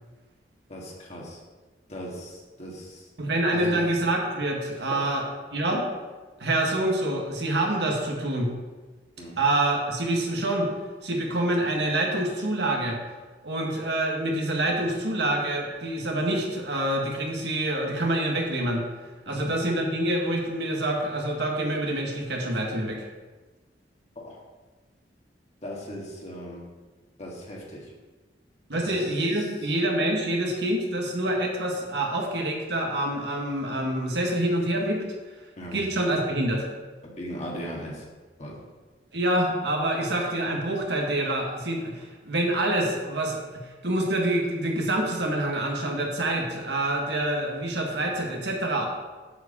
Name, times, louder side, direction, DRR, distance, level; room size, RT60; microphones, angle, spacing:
voice 1, 0.7-1.4 1.9-3.0 3.5-3.8 4.9-5.1 9.2-9.4 19.3-19.5 24.2-24.4 25.6-26.7 27.2-27.9 28.7-29.0 35.6-35.8 37.0-38.0 38.4-38.6, equal, 40° left, -2 dB, 1.9 m, -38 dB
voice 2, 3.2-5.2 5.5-5.8 6.4-8.5 9.4-10.7 11.0-13.0 13.4-18.8 19.2-23.0 28.7-35.0 35.7-36.7 39.1-48.9, right 1 dB, 70° right, 0 dB, 1.7 m, -26 dB
7.8 x 4.9 x 6.7 m, 1.3 s
head